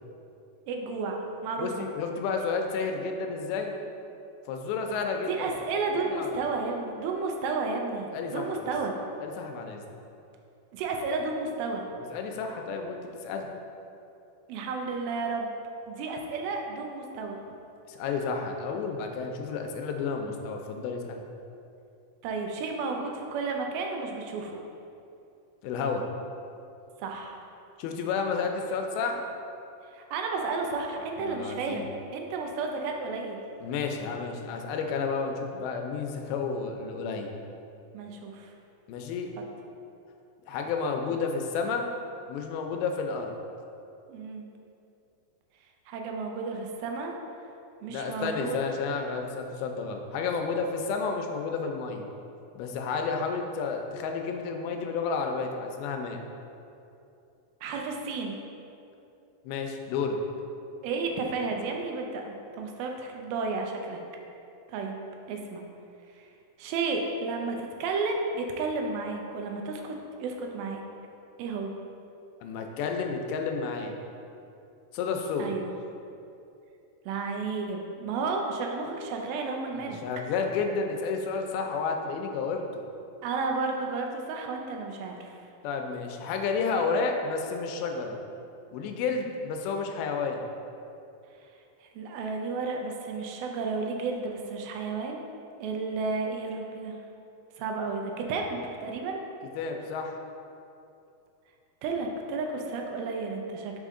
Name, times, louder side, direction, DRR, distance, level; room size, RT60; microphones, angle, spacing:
voice 1, 0.7-1.9 5.3-9.0 10.7-11.9 14.5-15.5 15.9-17.4 22.2-24.6 27.0-27.4 29.9-33.4 37.9-38.5 44.1-44.5 45.9-47.1 47.8-48.6 57.6-58.4 60.8-64.0 64.7-65.0 65.3-65.7 66.6-70.8 71.4-71.8 75.4-75.7 77.1-80.0 83.2-85.4 92.0-95.2 95.6-97.0 97.6-99.2 101.8-103.7, right 4 dB, 85° right, 2 dB, 2.4 m, -32 dB
voice 2, 1.6-3.7 4.5-5.3 5.9-6.4 8.1-8.7 9.2-9.8 12.1-13.5 17.9-21.2 25.6-26.1 27.8-29.2 31.2-31.9 33.6-37.3 38.9-39.3 40.5-41.9 42.3-43.3 47.9-52.1 52.6-56.2 59.5-60.2 72.4-74.0 74.9-75.5 79.7-82.8 85.6-88.2 88.7-90.4 99.6-100.2, left 5 dB, 90° left, 3 dB, 2.5 m, -31 dB
5.4 x 5.1 x 3.6 m, 2.7 s
omnidirectional pair, 4.3 m